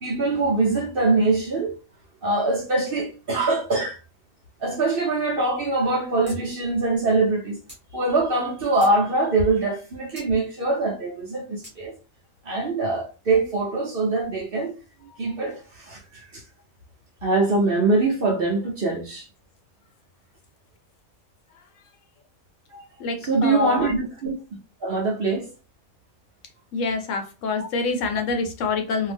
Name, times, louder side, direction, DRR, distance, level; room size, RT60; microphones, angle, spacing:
voice 1, 0.0-1.8 2.2-4.0 4.6-7.6 7.9-11.9 12.4-14.7 15.2-16.4 17.2-19.3 22.7-22.8 23.2-24.3 24.8-25.5, right 3 dB, 50° right, 0.7 m, -23 dB
sound 1, 6.3-6.4 6.7-6.8 7.7-7.8 8.4-9.0 10.2-10.3 11.6-11.8, right 1 dB, 10° right, 0.9 m, -44 dB
voice 2, 23.0-24.0 26.7-29.1, left 4 dB, 70° left, 0.9 m, -26 dB
2.6 x 2.0 x 3.3 m
omnidirectional pair, 1.5 m